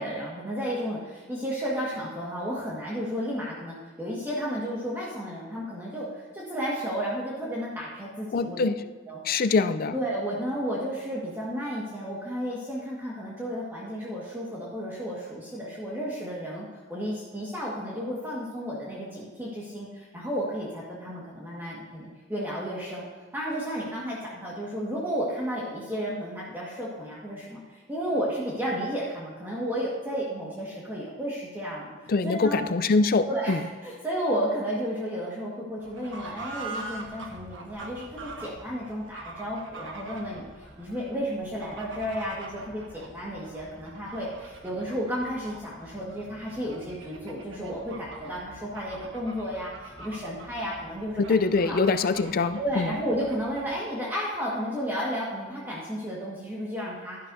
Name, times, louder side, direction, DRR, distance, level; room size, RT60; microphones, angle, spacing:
voice 1, 0.0-6.1 6.3-8.7 9.1-9.4 9.9-23.0 23.3-31.9 32.2-32.6 33.3-40.5 40.8-51.2 51.7-51.8 52.6-57.2, equal, 10° right, -6 dB, 1.6 m, -32 dB
voice 2, 8.3-8.8 9.2-9.9 32.1-33.6 51.2-52.9, left 4 dB, 50° left, 12 dB, 0.5 m, -24 dB
Fowl / Bird, 35.8-53.8, right 2 dB, 90° right, 1.3 m, -44 dB
11.5 x 11.0 x 2.7 m, 1.4 s
head